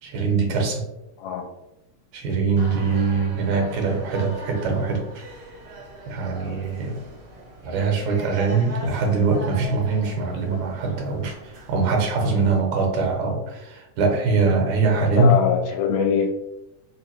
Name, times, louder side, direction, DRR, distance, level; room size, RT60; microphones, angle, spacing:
voice 1, 0.0-0.9 2.1-5.2 6.1-7.0 7.6-15.5, right 4 dB, 85° right, 2 dB, 2.1 m, -22 dB
voice 2, 1.2-1.5 14.8-16.3, left 6 dB, 80° left, 4 dB, 1.8 m, -23 dB
sound 1, 2.6-12.6, right 2 dB, 60° right, 1.1 m, -40 dB
4.5 x 2.5 x 2.8 m, 0.92 s
omnidirectional pair, 3.3 m